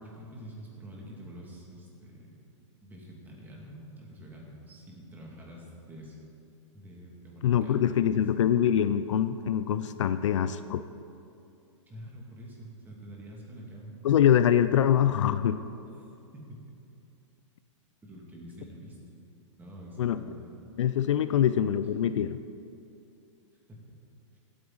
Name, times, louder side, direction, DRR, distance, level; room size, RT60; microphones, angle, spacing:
voice 1, 0.0-2.4 2.8-6.2 6.7-8.2 11.9-14.0 16.3-16.6 18.0-19.0 19.6-20.8 21.3-21.5, equal, 10° right, -3 dB, 2.4 m, -47 dB
voice 2, 7.4-10.9 14.0-15.7 20.0-20.2 20.8-22.4, left 10 dB, 70° left, 12 dB, 0.5 m, -24 dB
16.5 x 8.8 x 4.1 m, 2.6 s
hypercardioid pair, 140°, 16 cm